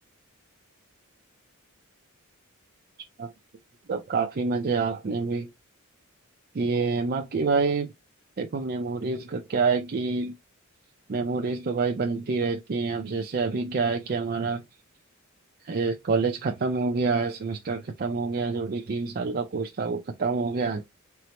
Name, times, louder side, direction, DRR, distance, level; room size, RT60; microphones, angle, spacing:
voice 1, 3.9-5.5 6.5-7.9 8.4-10.4 11.1-14.6 15.6-20.8, right 4 dB, 45° right, 0.5 m, -27 dB
4.4 x 2.1 x 4.0 m
head